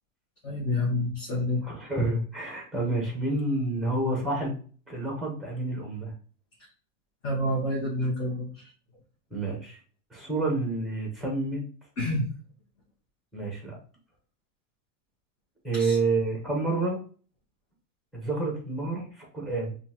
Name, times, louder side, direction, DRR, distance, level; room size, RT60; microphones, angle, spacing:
voice 1, 0.4-1.6 7.2-8.5 12.0-12.2 15.7-16.0, left 1 dB, 30° left, -4 dB, 1.2 m, -28 dB
voice 2, 1.6-4.6 4.9-6.1 9.3-9.8 10.1-11.6 13.3-13.8 15.6-17.0 18.1-19.7, right 2 dB, ahead, -1 dB, 1.1 m, -29 dB
5.2 x 2.6 x 2.9 m, 0.42 s
supercardioid pair, 160°, 40 cm